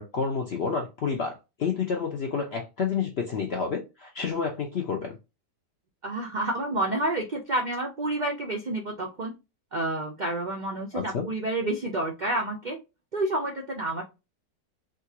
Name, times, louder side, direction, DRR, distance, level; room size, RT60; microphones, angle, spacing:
voice 1, 0.0-5.2 10.9-11.3, left 5 dB, 70° left, 2 dB, 0.6 m, -29 dB
voice 2, 6.0-9.3 9.7-12.8 13.1-14.0, right 2 dB, 85° right, 0 dB, 0.4 m, -29 dB
3.7 x 2.4 x 2.8 m, 0.25 s
omnidirectional pair, 1.8 m